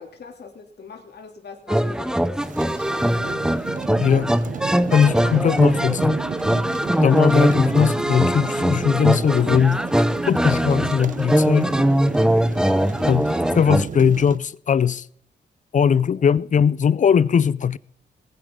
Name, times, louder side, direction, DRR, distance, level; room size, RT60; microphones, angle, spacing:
voice 1, 0.0-3.5 16.0-16.2, left 5 dB, 65° left, 2.6 m, -43 dB
sound 1, 1.7-13.8, equal, 5° right, 0.5 m, -21 dB
sound 2, 2.4-14.4, right 6 dB, 45° right, 0.6 m, -33 dB
voice 2, 4.0-4.3 4.9-6.2 7.0-9.9 10.3-11.7 13.1-15.1 15.7-17.8, left 7 dB, 45° left, 0.4 m, -19 dB
19.0 x 9.9 x 3.7 m
wide cardioid pair, 110°, 19 cm